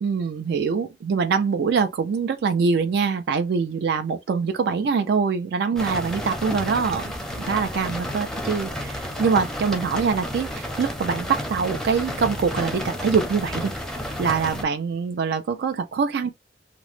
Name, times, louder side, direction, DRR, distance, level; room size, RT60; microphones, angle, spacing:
voice 1, 0.0-7.1 7.4-13.7 14.2-16.3, right 5 dB, 65° right, 0.3 m, -24 dB
sound 1, 5.8-14.6, equal, 5° left, 0.5 m, -31 dB
2.9 x 2.0 x 3.1 m
head